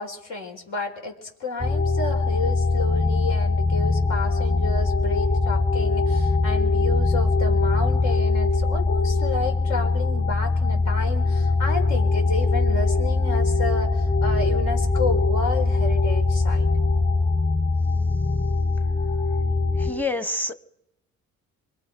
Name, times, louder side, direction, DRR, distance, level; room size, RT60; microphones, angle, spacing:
voice 1, 0.0-16.7, left 3 dB, 75° left, 2 dB, 4.6 m, -31 dB
sound 1, 1.6-19.9, left 3 dB, 30° left, 4.8 m, -22 dB
voice 2, 19.8-20.5, left 2 dB, 5° left, 12 dB, 1.1 m, -27 dB
26.0 x 23.0 x 5.3 m, 0.85 s
cardioid pair, 90°, 30 cm